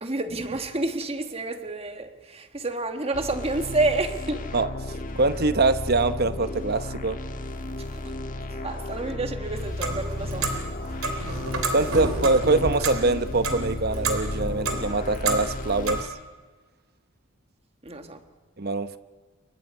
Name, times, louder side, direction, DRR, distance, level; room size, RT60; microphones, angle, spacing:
voice 1, 0.0-4.5 7.9-8.0 8.6-10.5 17.8-18.2, right 2 dB, 25° right, 1.6 m, -29 dB
sound 1, 3.1-16.0, left 1 dB, 40° left, 1.4 m, -34 dB
voice 2, 5.2-7.2 11.7-16.1 18.6-19.0, right 3 dB, 45° right, 0.9 m, -23 dB
Clock, 9.6-16.0, right 2 dB, 75° right, 3.3 m, -30 dB
29.5 x 23.5 x 5.5 m
head